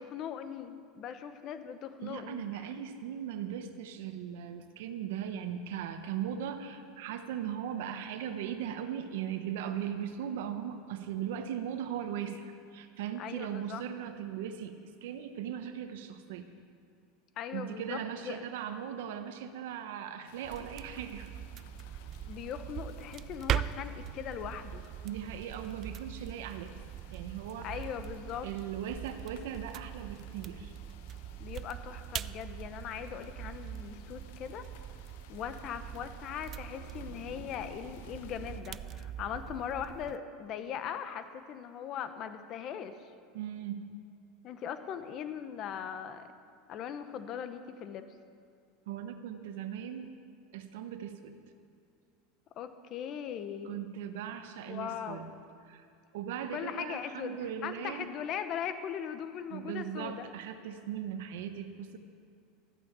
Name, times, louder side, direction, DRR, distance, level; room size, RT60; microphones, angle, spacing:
voice 1, 0.0-2.7 13.2-13.8 17.4-18.4 21.9-24.8 27.6-28.5 31.4-34.7 35.3-43.1 44.4-46.3 46.7-48.1 52.6-53.9 54.7-55.3 56.5-57.4 57.6-60.3, left 8 dB, 40° left, 10 dB, 1.0 m, -40 dB
voice 2, 2.0-16.5 17.5-21.3 25.0-26.8 27.1-27.9 28.4-30.7 43.3-43.9 48.9-50.1 50.5-51.4 53.6-55.3 55.7-55.9 56.1-58.1 59.5-62.0, right 9 dB, 75° right, 8 dB, 1.1 m, -38 dB
sound 1, 20.2-38.6, left 8 dB, 75° left, 1.1 m, -58 dB
sound 2, 20.4-40.2, right 10 dB, 35° right, 0.3 m, -41 dB
13.5 x 9.1 x 8.2 m, 2.3 s
supercardioid pair, 150°, 0 cm